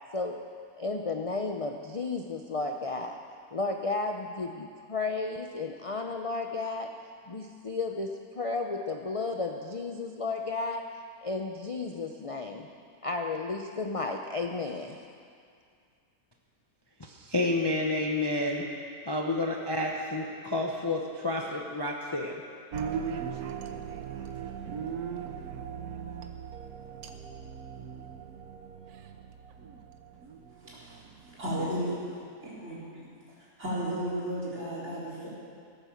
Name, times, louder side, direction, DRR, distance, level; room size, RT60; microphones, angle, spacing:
voice 1, 0.8-3.2 3.5-6.9 7.3-10.9 11.2-12.7 13.0-15.0, left 3 dB, 45° left, 3 dB, 0.4 m, -33 dB
voice 2, 17.0-18.8 19.1-22.3, left 2 dB, 20° left, 0 dB, 0.8 m, -30 dB
sound 1, 22.7-31.9, right 7 dB, 85° right, 1.4 m, -39 dB
voice 3, 30.6-31.0 31.3-31.9 32.4-33.1 33.6-35.3, right 1 dB, 50° right, -7 dB, 4.6 m, -34 dB
17.5 x 8.9 x 7.1 m, 2.3 s
omnidirectional pair, 1.6 m